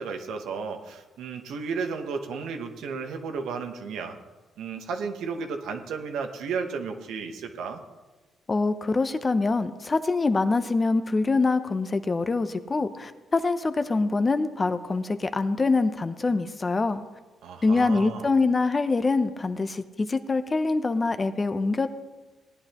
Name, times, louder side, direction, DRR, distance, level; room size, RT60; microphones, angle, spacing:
voice 1, 0.0-4.2 4.6-7.8 17.4-18.3, right 5 dB, 80° right, 5 dB, 1.1 m, -33 dB
voice 2, 8.5-17.0 17.6-21.9, left 3 dB, 30° left, 10 dB, 0.7 m, -24 dB
17.5 x 9.6 x 3.0 m, 1.2 s
cardioid pair, 90°, 0 cm